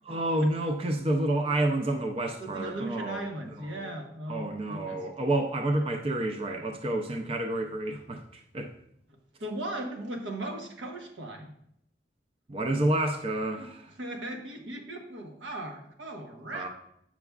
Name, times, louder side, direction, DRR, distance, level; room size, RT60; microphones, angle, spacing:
voice 1, 0.0-3.9 4.3-8.7 12.5-13.9 16.5-16.7, right 1 dB, 30° right, 4 dB, 0.4 m, -29 dB
voice 2, 2.4-5.0 9.4-11.5 13.6-13.7 14.0-16.7, right 1 dB, 85° right, 3 dB, 1.0 m, -37 dB
8.0 x 5.9 x 2.4 m, 0.73 s
head